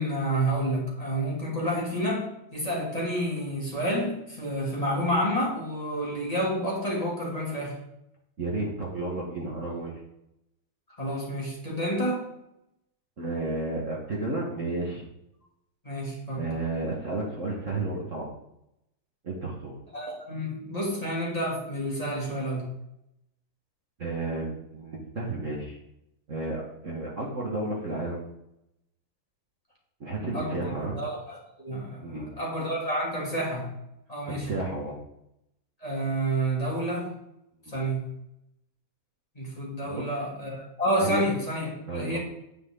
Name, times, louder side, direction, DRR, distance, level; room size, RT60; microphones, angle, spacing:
voice 1, 0.0-2.3 2.5-7.8 11.0-12.3 15.8-16.4 19.9-22.7 30.3-30.7 30.9-33.7 34.1-34.5 35.8-37.2 37.7-38.1 39.3-42.2, right 1 dB, 15° left, -4 dB, 2.9 m, -29 dB
voice 2, 8.4-9.9 13.2-15.0 16.3-18.3 19.2-19.8 24.0-25.8 26.3-28.2 30.0-31.0 32.0-32.3 34.3-34.9 39.8-40.1 41.0-41.2 41.9-42.2, right 2 dB, 40° right, -3 dB, 2.0 m, -32 dB
9.7 x 9.5 x 3.9 m, 0.81 s
omnidirectional pair, 2.3 m